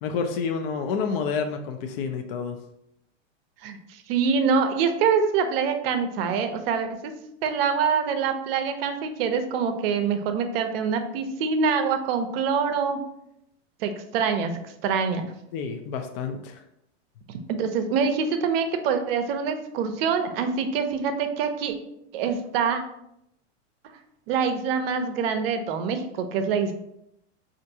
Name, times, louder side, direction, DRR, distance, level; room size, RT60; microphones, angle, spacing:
voice 1, 0.0-2.6 15.5-16.6, left 5 dB, 55° left, 6 dB, 0.5 m, -29 dB
voice 2, 3.6-7.1 7.4-13.0 13.8-15.2 17.5-21.7 22.1-22.8 24.3-26.7, right 6 dB, 55° right, 7 dB, 0.5 m, -25 dB
4.4 x 2.5 x 2.7 m, 0.79 s
supercardioid pair, 145°, 35 cm